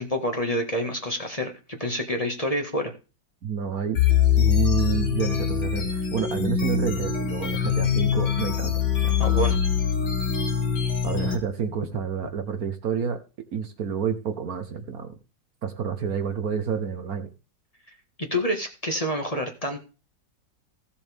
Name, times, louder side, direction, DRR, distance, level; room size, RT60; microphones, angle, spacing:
voice 1, 0.0-2.9 9.2-9.6 18.2-19.9, equal, 20° left, 4 dB, 1.6 m, -28 dB
voice 2, 3.4-4.0 4.4-9.2 11.0-13.2 13.5-15.1 15.6-17.3, right 7 dB, 60° right, 8 dB, 1.4 m, -29 dB
sound 1, 3.9-11.3, left 8 dB, 75° left, 2.7 m, -23 dB
16.0 x 7.3 x 3.5 m, 0.32 s
omnidirectional pair, 1.9 m